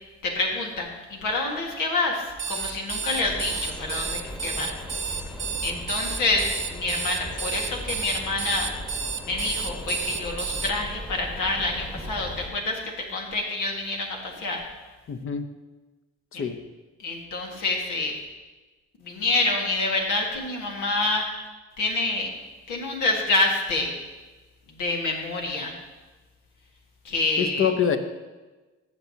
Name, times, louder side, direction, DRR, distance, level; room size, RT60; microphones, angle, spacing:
voice 1, 0.2-8.7 9.3-14.6 16.3-16.4 17.0-18.1 19.0-21.2 21.8-22.3 22.7-23.9 24.8-25.7 27.0-27.7, left 2 dB, 90° left, 0 dB, 1.8 m, -27 dB
Alarm, 2.3-10.7, right 6 dB, 40° right, 0.8 m, -31 dB
sound 1, 3.1-12.5, equal, 5° left, 1.1 m, -38 dB
voice 2, 15.1-15.5 16.3-16.6 27.4-28.0, left 7 dB, 45° left, 9 dB, 0.8 m, -25 dB
14.0 x 6.9 x 2.8 m, 1.2 s
cardioid pair, 90°, 30 cm